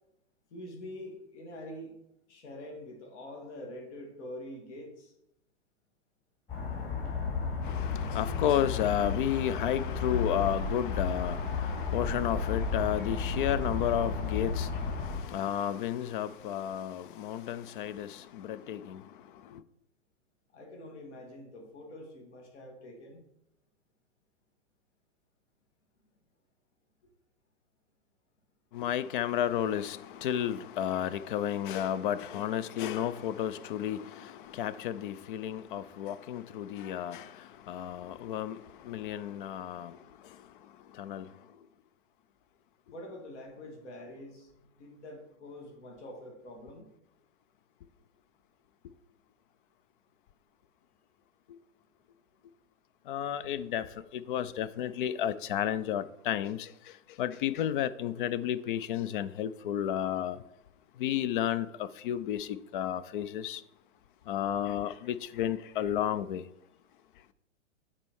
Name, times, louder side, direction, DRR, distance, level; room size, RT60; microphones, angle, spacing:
voice 1, 0.5-2.0 2.3-5.1 20.5-23.2 42.9-46.9, left 1 dB, 65° left, 2.4 m, -45 dB
sound 1, 6.5-15.2, left 5 dB, 30° left, 2.7 m, -33 dB
voice 2, 7.6-19.0 28.7-37.3 37.7-38.6 38.8-40.0 41.0-41.3 53.1-53.8 54.1-56.7 57.2-60.4 61.0-63.6 64.3-66.4, left 10 dB, 45° left, 0.5 m, -32 dB
7.4 x 4.3 x 4.7 m
hypercardioid pair, 120°, 38 cm